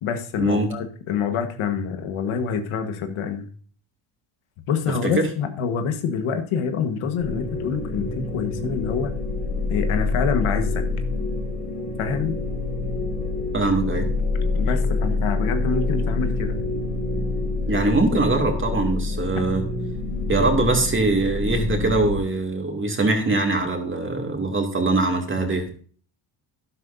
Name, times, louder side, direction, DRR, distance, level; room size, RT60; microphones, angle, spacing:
voice 1, 0.0-3.5 4.7-9.1 9.7-10.9 12.0-12.4 14.5-16.6, left 6 dB, 75° left, 1.6 m, -26 dB
sound 1, 7.2-22.2, left 3 dB, 35° left, 4.9 m, -26 dB
voice 2, 13.5-14.1 17.7-19.6 20.3-25.8, right 2 dB, 25° right, 2.5 m, -22 dB
12.0 x 11.0 x 2.7 m
cardioid pair, 110°, 50 cm